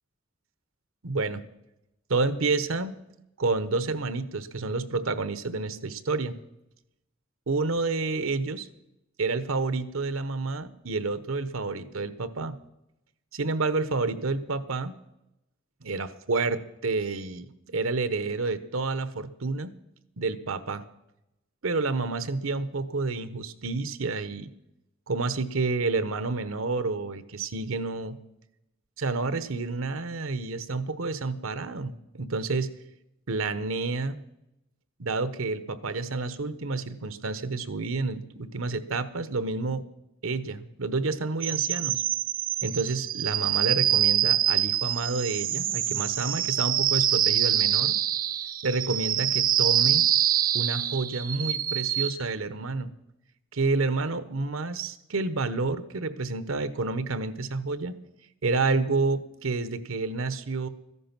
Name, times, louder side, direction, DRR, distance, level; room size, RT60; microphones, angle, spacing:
voice 1, 1.0-1.4 2.1-3.0 3.4-6.4 7.5-8.7 9.2-12.6 13.3-15.0 15.8-19.7 20.2-20.8 21.6-24.5 25.1-28.2 29.0-32.7 33.3-34.2 35.0-39.8 40.2-42.0 42.6-47.9 48.6-50.1 50.5-52.9 53.5-58.0 58.4-60.7, right 3 dB, 85° right, 13 dB, 1.0 m, -29 dB
sound 1, 41.4-52.1, right 11 dB, 45° right, 0.5 m, -25 dB
14.0 x 11.0 x 6.0 m, 0.88 s
head